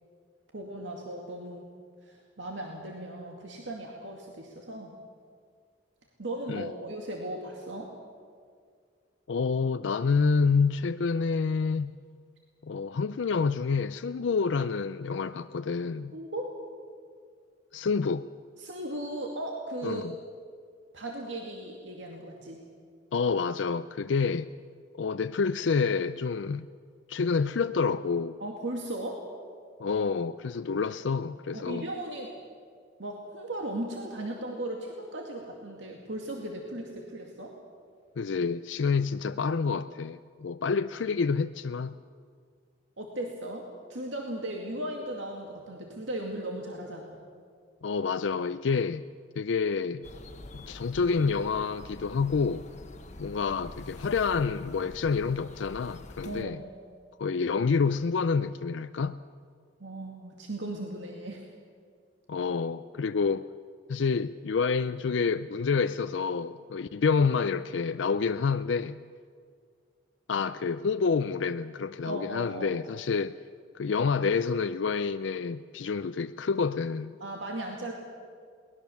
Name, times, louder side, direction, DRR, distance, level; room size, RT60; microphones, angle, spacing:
voice 1, 0.5-1.7 2.0-4.9 6.2-7.9 16.1-16.5 18.6-20.1 20.9-22.6 28.4-29.2 31.5-32.3 33.0-37.5 43.0-47.2 56.2-56.7 59.8-61.4 72.0-72.8 77.2-77.9, right 1 dB, 85° right, 2.2 m, -37 dB
voice 2, 9.3-12.0 12.6-16.1 17.7-18.3 19.8-20.2 23.1-24.5 25.0-26.7 27.1-28.4 29.8-31.9 38.2-42.0 47.8-49.0 49.4-50.1 50.5-52.6 53.2-56.6 57.2-59.2 62.3-63.5 63.9-69.0 70.3-73.4 73.7-77.1, left 5 dB, 85° left, 0.5 m, -28 dB
sound 1, 50.0-56.4, left 1 dB, 40° left, 1.3 m, -46 dB
22.5 x 19.5 x 7.1 m
head